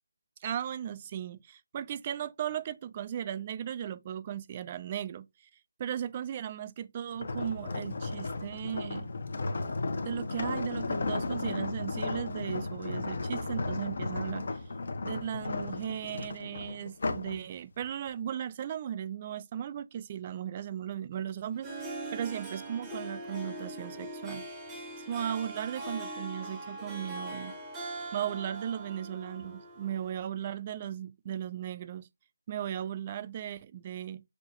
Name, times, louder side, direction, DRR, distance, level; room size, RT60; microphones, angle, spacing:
voice 1, 0.4-5.3 5.8-9.1 10.0-14.5 15.0-21.7 22.1-24.5 25.0-27.5 28.1-32.1 32.5-34.2, right 9 dB, 25° right, 0.3 m, -36 dB
sound 1, 7.2-17.4 17.8-18.1, left 3 dB, 50° left, 0.7 m, -34 dB
Harp, 21.5-30.2, right 2 dB, 5° right, 0.8 m, -41 dB
6.2 x 2.2 x 2.9 m
figure-of-eight pair, 165°, 0 cm